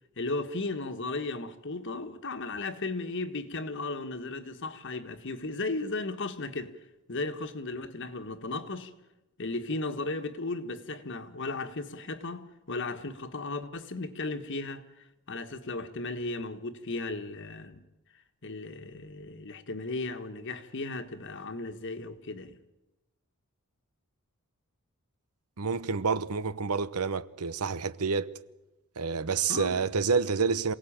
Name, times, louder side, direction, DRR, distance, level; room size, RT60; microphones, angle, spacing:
voice 1, 0.2-6.8 7.1-8.9 9.4-14.8 15.3-17.8 18.4-22.6 29.5-29.8, left 3 dB, 55° left, 1.5 m, -35 dB
voice 2, 25.6-28.3 29.0-30.7, right 5 dB, 90° right, 0.9 m, -28 dB
27.5 x 18.0 x 8.9 m
head